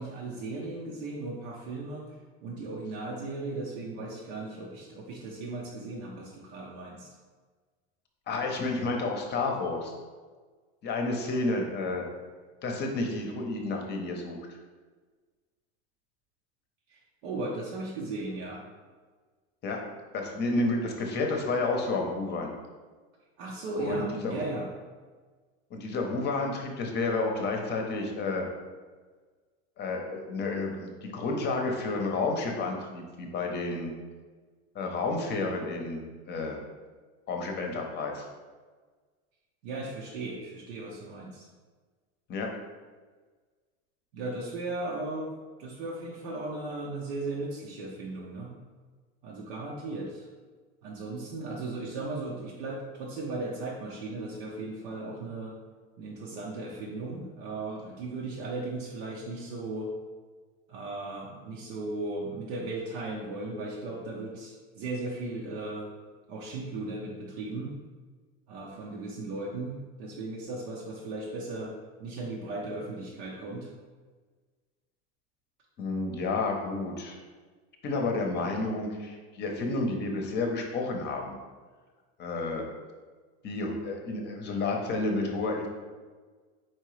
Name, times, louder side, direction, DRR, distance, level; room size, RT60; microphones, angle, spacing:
voice 1, 0.0-2.0 2.4-7.1 16.9-18.6 23.4-24.7 39.6-41.5 44.1-45.3 45.6-48.5 49.2-50.3 50.8-55.6 56.0-59.9 60.7-65.9 66.3-67.7 68.5-71.7 72.0-73.7, right 2 dB, 80° right, -3 dB, 0.8 m, -36 dB
voice 2, 8.3-9.9 10.8-12.0 12.6-14.4 19.6-19.8 20.1-22.5 23.8-24.3 25.7-28.5 29.8-33.9 34.7-36.0 36.3-36.6 37.3-38.3 42.3-42.5 75.8-77.2 77.8-81.4 82.2-82.7 83.4-85.7, left 3 dB, 35° left, 2 dB, 0.7 m, -30 dB
4.4 x 3.6 x 3.1 m, 1.4 s
supercardioid pair, 130°, 32 cm